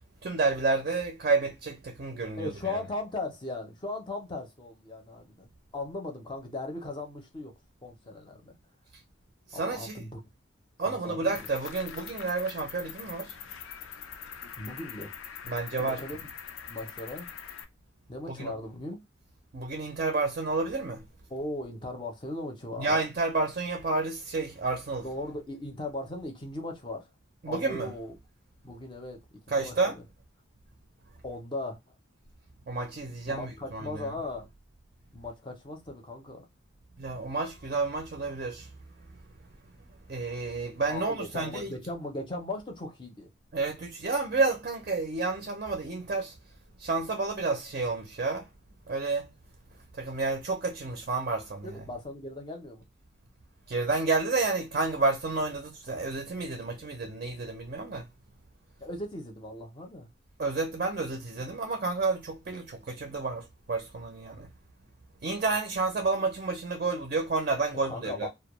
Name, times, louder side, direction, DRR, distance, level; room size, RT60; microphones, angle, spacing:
voice 1, 0.2-2.5 9.5-10.1 10.8-13.3 15.5-16.0 18.3-18.5 19.5-21.0 22.8-25.0 27.4-27.9 29.5-30.0 32.7-34.1 37.0-38.7 40.1-41.7 43.5-46.3 46.8-48.5 48.9-49.3 50.0-51.7 53.7-58.1 60.4-64.5 65.2-68.3, right 3 dB, 45° right, 0.4 m, -30 dB
voice 2, 2.4-7.5 7.8-8.6 9.5-10.2 10.8-11.4 14.6-15.1 15.8-16.3 16.7-17.3 18.1-19.0 21.3-23.0 25.0-27.0 27.5-28.2 28.6-30.0 31.2-31.8 33.3-34.5 35.1-36.5 40.9-43.3 51.6-52.9 56.5-56.7 58.8-60.1 67.8-68.3, left 2 dB, 25° left, 0.5 m, -38 dB
Cricket, 11.3-17.6, left 8 dB, 85° left, 0.4 m, -43 dB
2.2 x 2.1 x 2.9 m
head